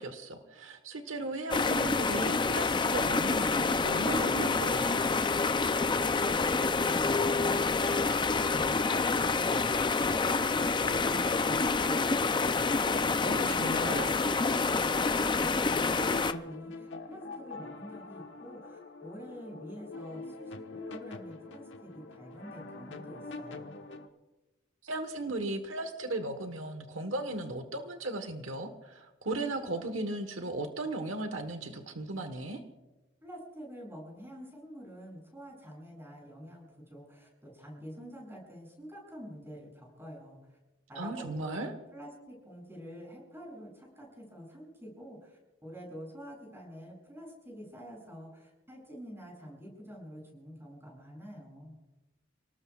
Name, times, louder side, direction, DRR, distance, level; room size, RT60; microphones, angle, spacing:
voice 1, 0.0-5.0 13.2-14.1 24.8-32.6 41.0-41.7, right 2 dB, 85° right, 7 dB, 1.3 m, -36 dB
sound 1, 1.5-16.3, left 4 dB, 25° left, 0.5 m, -28 dB
voice 2, 5.9-8.1 8.4-12.7 13.1-23.7 33.2-40.4 40.9-51.8, equal, 15° right, -2 dB, 7.4 m, -46 dB
sound 2, 8.0-24.1, left 3 dB, 65° left, 1.3 m, -44 dB
30.0 x 18.5 x 2.4 m, 1.1 s
head